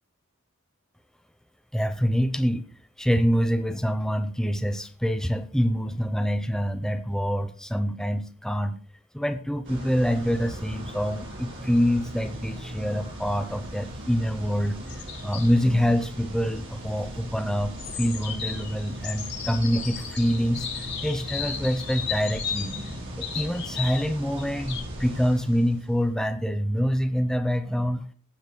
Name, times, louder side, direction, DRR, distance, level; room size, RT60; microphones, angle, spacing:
voice 1, 1.7-2.6 3.0-8.8 9.1-14.8 15.2-20.7 21.0-22.7 23.2-28.0, equal, 5° left, 8 dB, 0.9 m, -26 dB
sound 1, 9.6-26.0, equal, 60° right, 5.1 m, -38 dB
sound 2, 14.9-15.6 17.8-24.1 24.4-24.8, left 7 dB, 55° left, 6.5 m, -35 dB
22.0 x 8.0 x 2.3 m, 0.43 s
head